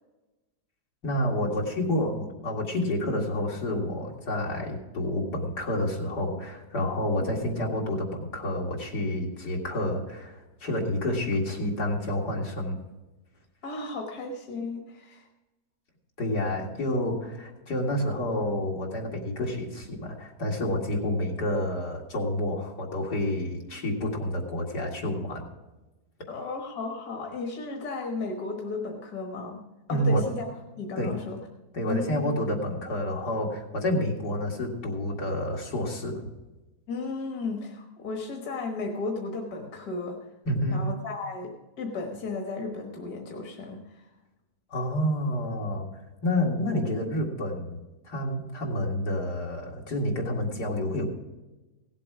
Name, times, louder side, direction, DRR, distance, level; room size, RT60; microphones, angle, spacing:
voice 1, 1.0-12.8 16.2-25.4 29.9-30.2 31.0-31.2 31.7-36.2 40.5-40.8 44.7-45.9 46.2-47.8 48.0-51.1, left 1 dB, 90° left, -1 dB, 2.7 m, -29 dB
voice 2, 13.6-15.3 26.3-29.6 29.9-30.5 30.8-31.4 31.8-32.3 36.9-40.2 40.7-44.0, left 3 dB, 70° left, 1 dB, 1.8 m, -34 dB
17.0 x 7.7 x 4.8 m, 1.1 s
omnidirectional pair, 1.7 m